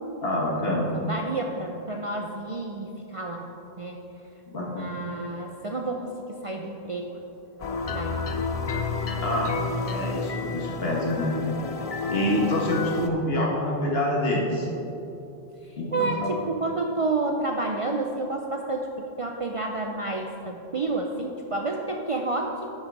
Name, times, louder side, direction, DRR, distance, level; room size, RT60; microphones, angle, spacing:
voice 1, 0.2-0.9 4.5-4.9 9.2-9.5 9.9-11.3 12.1-14.7 15.8-16.3, left 1 dB, 60° left, -2 dB, 1.7 m, -26 dB
voice 2, 0.9-3.5 3.8-4.0 4.6-7.2 7.9-8.2 9.6-10.2 12.5-12.6 15.6-18.9 19.2-22.7, right 2 dB, 40° right, 1 dB, 0.5 m, -30 dB
sound 1, 7.6-13.1, left 4 dB, 45° left, 0.5 m, -30 dB
10.5 x 6.4 x 4.8 m, 2.9 s
omnidirectional pair, 1.1 m